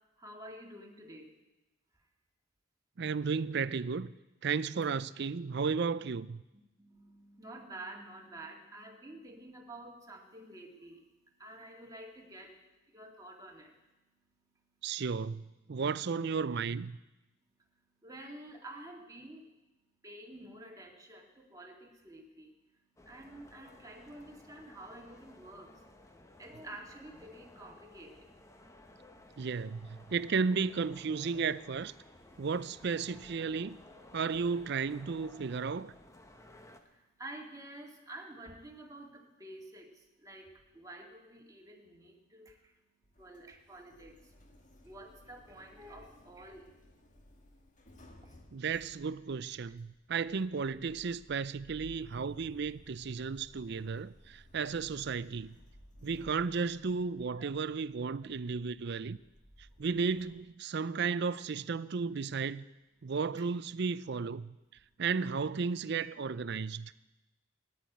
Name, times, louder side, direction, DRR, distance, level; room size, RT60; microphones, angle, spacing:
voice 1, 0.2-1.3 4.7-5.0 6.5-12.6 12.9-13.8 18.0-19.5 20.0-22.5 23.0-25.8 26.4-28.3 36.8-42.8 43.2-44.3 44.8-46.7 48.2-48.4 57.4-57.5 58.2-58.3, right 1 dB, 20° right, 2.2 m, -50 dB
voice 2, 3.0-4.1 4.4-6.4 14.8-17.0 29.4-31.9 32.4-33.8 34.1-35.9 48.5-55.6 56.0-59.2 59.8-62.6 63.0-64.6 65.0-66.9, right 5 dB, 55° right, 0.5 m, -34 dB
sound 1, 23.0-36.8, left 1 dB, 15° left, 1.1 m, -57 dB
Sliding door, 43.0-60.4, equal, 40° left, 1.7 m, -58 dB
14.5 x 10.5 x 9.2 m
head